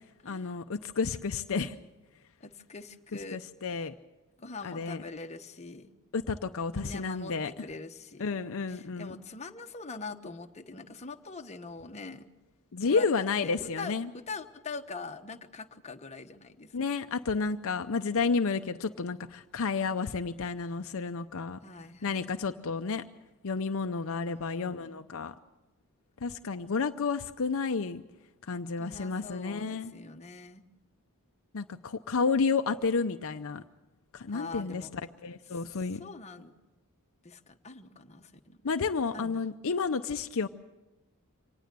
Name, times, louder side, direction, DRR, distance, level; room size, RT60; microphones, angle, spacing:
voice 1, 0.2-1.8 3.1-3.9 4.6-5.0 6.1-7.6 8.2-9.1 12.7-14.1 16.7-21.6 22.0-23.0 23.4-25.3 26.2-28.0 28.4-29.9 31.5-33.6 34.1-36.0 38.6-40.5, left 4 dB, 65° left, 8 dB, 0.6 m, -31 dB
voice 2, 2.4-3.4 4.4-5.9 6.7-8.4 8.7-12.2 12.9-13.9 14.3-16.8 21.6-22.2 23.9-24.9 28.8-30.6 34.3-34.9 36.0-36.5 37.2-38.6 39.1-39.5, left 3 dB, 30° left, 5 dB, 1.1 m, -43 dB
25.0 x 19.0 x 6.8 m, 1.1 s
head